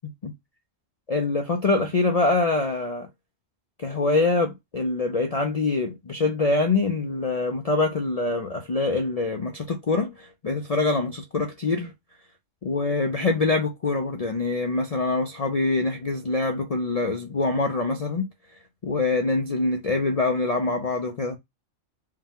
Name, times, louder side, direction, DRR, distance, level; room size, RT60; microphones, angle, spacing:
voice 1, 1.1-3.1 3.8-11.9 12.6-18.3 18.8-21.4, left 3 dB, 45° left, 0.5 m, -24 dB
4.7 x 2.3 x 3.6 m
omnidirectional pair, 1.3 m